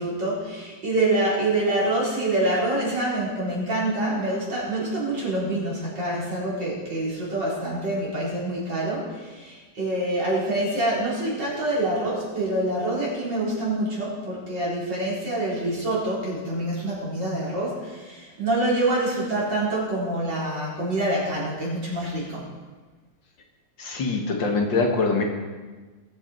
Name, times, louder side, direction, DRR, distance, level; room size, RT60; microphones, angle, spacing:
voice 1, 0.0-22.4, right 1 dB, 65° right, -6 dB, 4.8 m, -26 dB
voice 2, 23.8-25.2, left 3 dB, 75° left, 2 dB, 2.3 m, -23 dB
20.5 x 7.9 x 4.5 m, 1.3 s
omnidirectional pair, 2.1 m